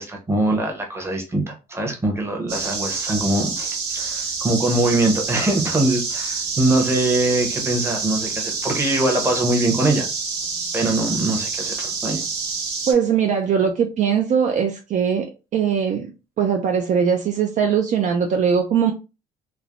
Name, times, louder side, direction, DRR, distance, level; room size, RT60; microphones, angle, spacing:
voice 1, 0.0-10.1 10.7-12.2, right 2 dB, 15° right, 0.8 m, -22 dB
sound 1, 2.5-12.9, right 4 dB, 80° right, 0.9 m, -27 dB
voice 2, 12.9-15.3 15.5-16.1 16.4-18.9, right 7 dB, 45° right, 0.4 m, -20 dB
3.2 x 2.0 x 2.4 m
cardioid pair, 110°, 17 cm